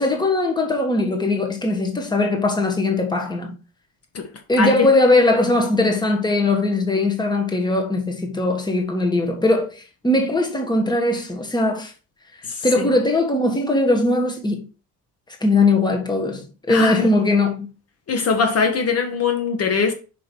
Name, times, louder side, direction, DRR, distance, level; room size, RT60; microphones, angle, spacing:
voice 1, 0.0-3.6 4.5-9.7 10.0-11.9 12.6-14.6 15.4-17.7, left 2 dB, 10° left, 1.5 m, -20 dB
voice 2, 4.6-4.9 12.4-12.6 16.7-17.1 18.1-19.9, left 5 dB, 45° left, 1.4 m, -21 dB
6.1 x 5.2 x 4.5 m
cardioid pair, 130°, 34 cm